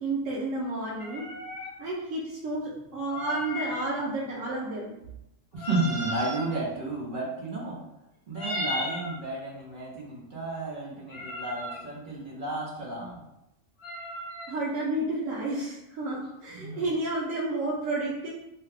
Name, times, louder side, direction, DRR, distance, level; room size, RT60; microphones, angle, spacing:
voice 1, 0.0-1.2 1.8-5.0 14.5-18.3, right 2 dB, 85° right, -6 dB, 1.1 m, -31 dB
sound 1, 1.0-1.7 3.0-3.9 5.5-6.5 8.3-9.2 11.1-11.8 13.8-14.5, equal, 55° left, 0.9 m, -35 dB
voice 2, 5.5-7.8 8.3-13.2 16.5-16.8, right 2 dB, 45° right, -4 dB, 0.9 m, -32 dB
2.8 x 2.3 x 3.2 m, 0.86 s
omnidirectional pair, 1.3 m